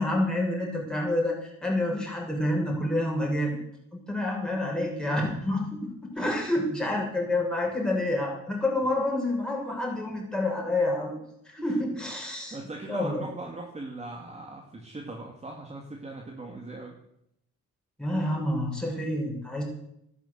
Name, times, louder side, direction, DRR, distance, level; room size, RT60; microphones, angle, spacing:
voice 1, 0.0-3.6 4.1-11.2 11.4-12.6 12.9-13.3 18.0-19.6, left 1 dB, 5° left, -2 dB, 6.6 m, -28 dB
voice 2, 12.5-16.9, right 2 dB, 20° right, 1 dB, 2.3 m, -39 dB
11.5 x 10.0 x 8.1 m, 0.78 s
cardioid pair, 90°, 30 cm